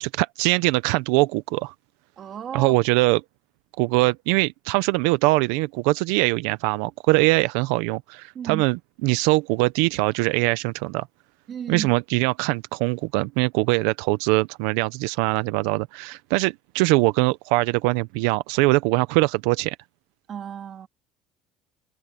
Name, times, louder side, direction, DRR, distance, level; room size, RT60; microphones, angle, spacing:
voice 1, 0.0-1.7 2.5-3.2 3.8-11.1 11.7-19.8, right 22 dB, 90° right, 0.6 m, -22 dB
voice 2, 2.2-2.7 8.3-8.7 11.5-11.9 20.3-20.9, right 8 dB, 30° right, 2.8 m, -33 dB
cardioid pair, 175°, 0 cm